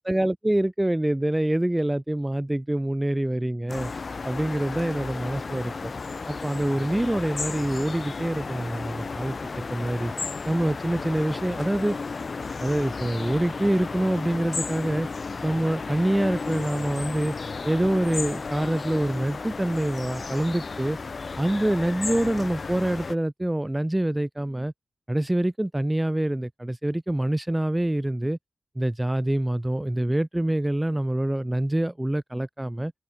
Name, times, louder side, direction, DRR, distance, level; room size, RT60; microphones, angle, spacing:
voice 1, 0.0-3.9 4.2-5.9 6.3-9.4 9.7-10.1 10.4-12.0 12.6-15.1 15.4-17.3 17.6-21.0 21.4-24.7 25.1-28.4 28.7-32.9, right 1 dB, 10° right, 3.1 m, -26 dB
sound 1, 3.7-23.1, left 4 dB, 45° left, 5.3 m, -33 dB
open air
wide cardioid pair, 130°, 0 cm